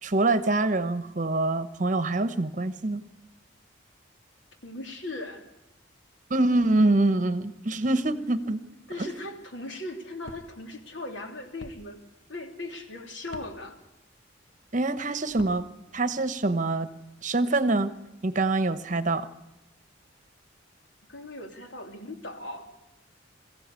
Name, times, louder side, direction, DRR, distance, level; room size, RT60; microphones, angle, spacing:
voice 1, 0.0-3.0 6.3-8.6 9.0-9.1 14.7-15.7 15.9-16.9 17.2-17.9 18.2-19.3, right 2 dB, 40° right, 12 dB, 1.1 m, -25 dB
voice 2, 4.6-5.5 8.1-8.2 8.9-12.0 12.3-13.8 21.1-22.7, left 2 dB, 70° left, 4 dB, 3.1 m, -38 dB
sound 1, 10.2-10.5 11.6-11.8 13.3-13.5 15.3-15.6, left 1 dB, 85° left, 1.4 m, -44 dB
22.5 x 15.5 x 8.3 m, 0.99 s
head